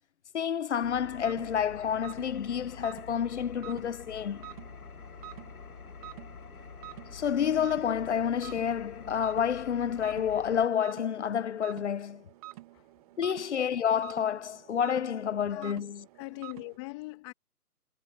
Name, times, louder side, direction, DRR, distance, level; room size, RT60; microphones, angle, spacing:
voice 1, 0.3-4.5 7.1-12.2 13.2-16.0, left 8 dB, 50° left, 1.1 m, -29 dB
Engine, 0.8-10.7, left 6 dB, 65° left, 2.2 m, -47 dB
sound 1, 1.1-16.8, right 17 dB, 25° right, 1.9 m, -49 dB
voice 2, 15.4-15.8 16.1-17.3, left 25 dB, 20° left, 1.9 m, -42 dB
figure-of-eight pair, 150°, 46 cm